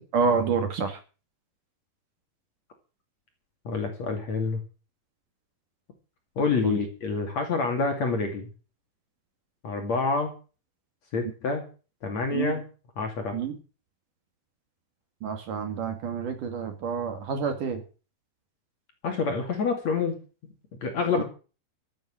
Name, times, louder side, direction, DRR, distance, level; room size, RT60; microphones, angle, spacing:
voice 1, 0.1-1.0 6.6-6.8 12.3-12.5 13.3-13.6 15.2-17.8 21.2-21.3, right 5 dB, 55° right, 7 dB, 3.1 m, -28 dB
voice 2, 3.6-4.6 6.4-8.5 9.6-10.3 11.1-11.7 12.0-12.6 13.0-13.4 19.0-20.2 20.8-21.2, left 4 dB, 45° left, 4 dB, 3.0 m, -27 dB
14.0 x 9.1 x 7.6 m, 0.36 s
omnidirectional pair, 5.0 m